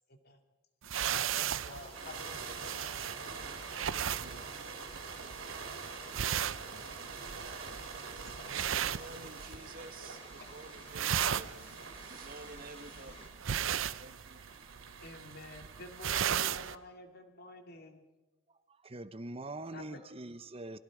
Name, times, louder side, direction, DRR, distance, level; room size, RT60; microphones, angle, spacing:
sound 1, 0.8-9.8 10.1-10.5 10.8-16.7, right 9 dB, 70° right, 0.6 m, -36 dB
voice 1, 1.0-3.1 8.1-9.4 15.0-18.0 19.7-20.0, left 2 dB, 50° left, 5 dB, 2.4 m, -50 dB
sound 2, 1.2-13.3, left 1 dB, 30° left, 3.4 m, -56 dB
sound 3, 1.9-16.7, right 5 dB, 90° right, 3.2 m, -46 dB
voice 2, 8.7-13.2 14.0-14.5, right 2 dB, 45° right, 8 dB, 1.5 m, -51 dB
voice 3, 18.5-20.8, right 2 dB, 30° right, 12 dB, 0.9 m, -43 dB
28.0 x 22.0 x 5.0 m, 1.1 s
head